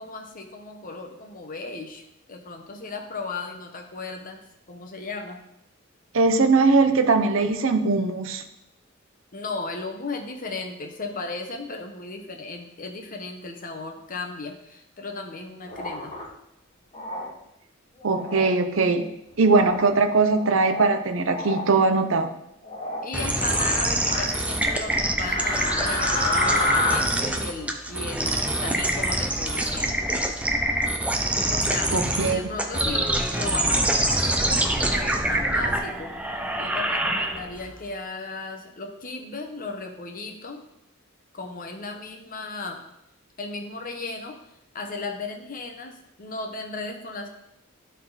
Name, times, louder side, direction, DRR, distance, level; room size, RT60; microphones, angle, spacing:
voice 1, 0.0-5.4 9.3-16.2 23.0-30.1 31.5-31.9 32.3-36.1 36.6-40.6 41.3-42.8 43.4-44.5 44.7-47.3, left 3 dB, 45° left, 4 dB, 1.0 m, -36 dB
voice 2, 6.1-8.4 18.0-19.1 19.4-22.3 31.9-32.4, right 3 dB, 70° right, 8 dB, 0.7 m, -20 dB
sound 1, 15.7-16.2 16.9-17.3 18.0-18.5 19.4-19.8 20.3-20.9 21.2-21.6 22.6-23.1 23.4-24.4 25.3-27.0, left 2 dB, 25° left, 2.3 m, -28 dB
sound 2, 23.1-37.7, right 1 dB, 5° right, 0.5 m, -25 dB
11.0 x 3.8 x 4.0 m, 0.81 s
head